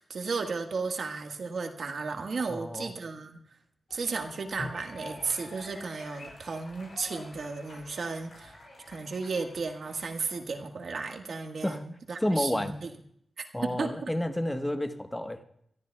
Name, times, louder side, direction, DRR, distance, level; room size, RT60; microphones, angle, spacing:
voice 1, 0.0-3.4 3.9-8.6 8.9-12.9 13.4-14.1, right 4 dB, 70° right, 4 dB, 1.5 m, -34 dB
voice 2, 2.5-2.9 11.6-11.8 12.2-12.7 13.5-15.4, left 1 dB, 15° left, 7 dB, 1.2 m, -30 dB
sound 1, 3.9-10.5, left 2 dB, 75° left, 5.7 m, -47 dB
27.5 x 13.5 x 2.3 m, 0.69 s
cardioid pair, 60°, 0 cm